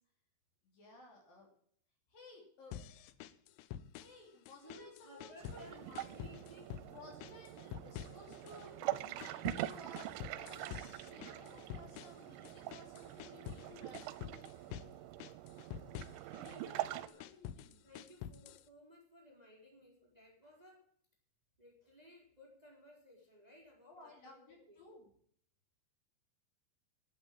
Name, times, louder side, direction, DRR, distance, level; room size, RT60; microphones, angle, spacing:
voice 1, 0.6-1.5 2.1-2.8 4.0-6.2 6.9-10.7 11.1-14.4 16.4-17.8 23.9-25.1, left 2 dB, 55° left, 0 dB, 4.3 m, -57 dB
sound 1, 2.7-4.2 4.5-5.7 6.0-6.9 7.2-8.7 9.0-13.7 13.9-14.9 15.2-16.6 17.0-18.7, left 10 dB, 85° left, 3.0 m, -48 dB
voice 2, 4.6-6.8 16.4-17.3 17.8-20.9 21.6-24.8, left 1 dB, 10° right, -2 dB, 3.2 m, -59 dB
sound 2, 5.4-17.1, right 15 dB, 85° right, 3.0 m, -44 dB
12.0 x 7.8 x 8.9 m, 0.62 s
omnidirectional pair, 5.2 m